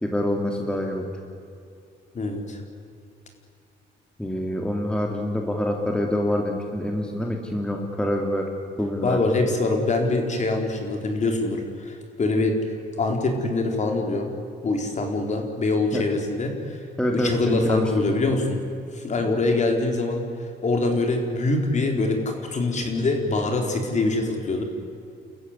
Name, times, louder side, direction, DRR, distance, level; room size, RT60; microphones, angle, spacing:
voice 1, 0.0-1.1 4.2-8.5 8.8-9.2 15.9-16.0 17.0-17.9, left 1 dB, 5° left, 2 dB, 2.4 m, -26 dB
voice 2, 2.1-2.6 9.0-12.6 13.0-14.3 14.6-16.8 17.1-18.6 18.9-20.3 20.6-24.6, left 2 dB, 40° left, 3 dB, 4.3 m, -24 dB
30.0 x 14.5 x 9.9 m, 2.5 s
cardioid pair, 110°, 19 cm